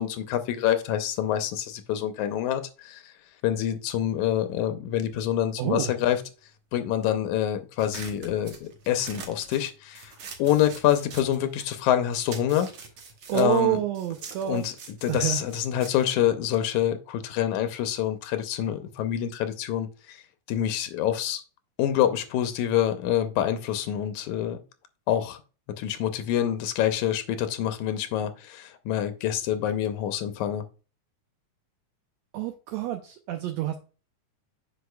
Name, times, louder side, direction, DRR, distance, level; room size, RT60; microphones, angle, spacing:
voice 1, 0.0-3.1 3.4-6.2 6.7-10.1 10.4-12.7 13.3-13.8 14.4-14.7 15.0-20.2 20.5-21.4 21.8-24.6 25.1-25.4 25.7-30.7, left 11 dB, 85° left, 2.1 m, -26 dB
voice 2, 5.6-5.9 13.3-14.7 15.1-15.4 32.3-33.8, right 13 dB, 75° right, 1.7 m, -28 dB
sound 1, 7.8-11.8 12.1-16.9, right 5 dB, 55° right, 1.7 m, -44 dB
8.0 x 5.9 x 2.2 m
omnidirectional pair, 3.4 m